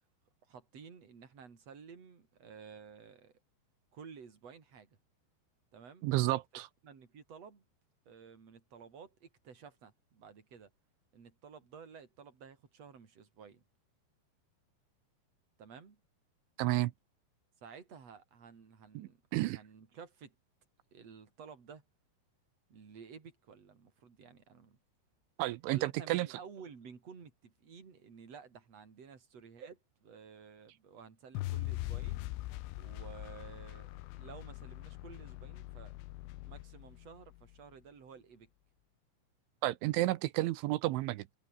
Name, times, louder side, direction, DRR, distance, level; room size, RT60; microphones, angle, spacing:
voice 1, 0.4-3.4 3.9-5.0 5.7-6.1 6.8-7.6 8.1-10.7 11.1-13.6 15.6-16.0 17.6-20.3 20.9-21.8 22.7-24.8 25.6-32.5 32.7-35.9 36.4-38.5, right 6 dB, 35° right, 4.4 m, -53 dB
voice 2, 6.0-6.7 16.6-16.9 19.0-19.6 25.4-26.3 39.6-41.3, right 17 dB, 80° right, 3.2 m, -31 dB
sound 1, 31.4-37.5, left 18 dB, 85° left, 3.6 m, -42 dB
omnidirectional pair, 5.6 m